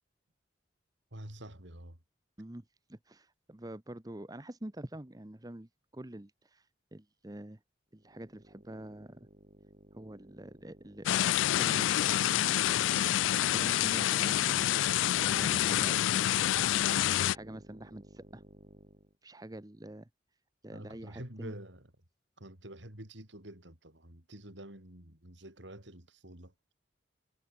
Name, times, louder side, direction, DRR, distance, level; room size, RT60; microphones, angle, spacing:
voice 1, 1.1-2.0 20.7-21.9 22.4-26.5, right 1 dB, 75° right, 6.4 m, -47 dB
voice 2, 2.4-7.6 7.9-9.3 9.9-12.0 12.5-14.8 15.3-16.6 16.8-18.4 19.2-20.1 20.6-21.5, right 1 dB, 20° right, 0.9 m, -46 dB
sound 1, 7.9-19.2, equal, 35° right, 3.4 m, -55 dB
sound 2, 11.1-17.4, left 12 dB, 90° left, 0.3 m, -27 dB
head